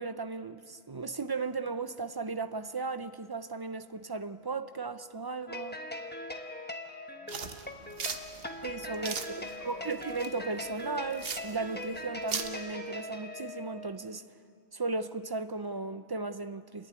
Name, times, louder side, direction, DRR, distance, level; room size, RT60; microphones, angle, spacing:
voice 1, 0.0-5.8 8.6-14.2 14.7-16.9, right 3 dB, 35° right, 0.4 m, -36 dB
sound 1, 5.5-13.9, left 1 dB, 10° left, 1.0 m, -41 dB
voice 2, 7.1-10.1, left 3 dB, 80° left, 2.0 m, -61 dB
sound 2, 7.3-12.5, right 5 dB, 60° right, 1.2 m, -39 dB
30.0 x 11.5 x 9.4 m
omnidirectional pair, 1.2 m